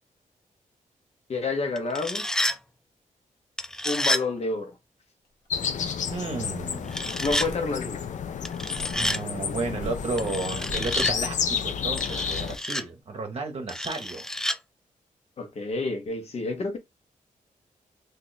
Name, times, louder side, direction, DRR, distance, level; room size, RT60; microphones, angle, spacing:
voice 1, 1.3-2.3 3.8-4.7 7.2-8.0 15.4-16.8, left 3 dB, 50° left, 1.1 m, -29 dB
sound 1, 1.8-2.6 3.6-4.2 6.9-7.5 8.4-9.2 10.2-11.1 12.0-12.8 13.7-14.6, left 1 dB, 5° left, 0.3 m, -29 dB
sound 2, 5.2-5.5 5.8-5.9 6.2-6.5 6.9-8.3 8.7-12.0, equal, 85° left, 1.2 m, -44 dB
sound 3, 5.5-12.6, left 7 dB, 65° left, 0.5 m, -31 dB
voice 2, 6.1-6.9 8.9-14.2, right 3 dB, 45° right, 0.9 m, -33 dB
3.0 x 2.7 x 4.0 m
wide cardioid pair, 120°, 14 cm